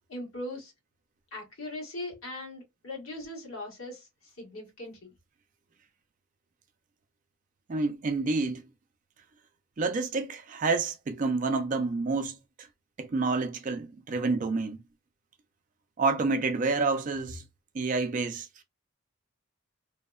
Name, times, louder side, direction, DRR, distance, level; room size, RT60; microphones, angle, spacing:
voice 1, 0.1-0.7 1.3-4.1 4.4-5.1, left 1 dB, 70° left, 1.4 m, -39 dB
voice 2, 7.7-8.6 9.8-12.7 13.0-14.8 16.0-17.4 17.7-18.6, right 3 dB, 35° right, 0.3 m, -29 dB
2.7 x 2.1 x 2.2 m
head